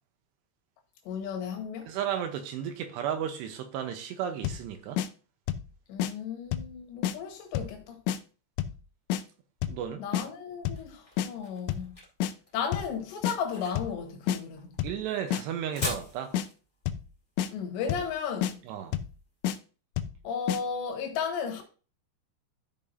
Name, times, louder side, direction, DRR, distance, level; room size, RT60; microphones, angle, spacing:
voice 1, 1.0-1.9 5.9-8.0 10.0-12.0 12.5-14.7 17.5-18.6 20.2-21.6, left 6 dB, 70° left, 3.5 m, -34 dB
voice 2, 1.9-5.0 9.7-10.0 14.8-16.3 18.7-18.9, right 9 dB, 75° right, 2.8 m, -34 dB
sound 1, 4.4-4.7 5.0-5.1 5.5-5.7 6.0-6.1 6.5-6.7 7.0-7.2 7.6-7.8 8.1-8.2 8.6-8.8 9.1-9.2 9.6-9.8 10.1-10.3 10.7-10.9 11.2-11.3 11.7-11.9 12.2-12.3 12.7-12.9 13.2-13.4 13.8-14.0 14.3-14.4 14.8-15.0 15.3-15.4 15.8-16.1 16.3-16.5 16.9-17.1 17.4-17.5 17.9-18.1 18.4-18.5 18.9-19.2 19.4-19.6 20.0-20.2 20.5-20.6, left 11 dB, 90° left, 3.1 m, -29 dB
sound 2, 10.3-19.3, left 1 dB, 25° left, 1.2 m, -43 dB
13.5 x 5.3 x 2.7 m
omnidirectional pair, 5.5 m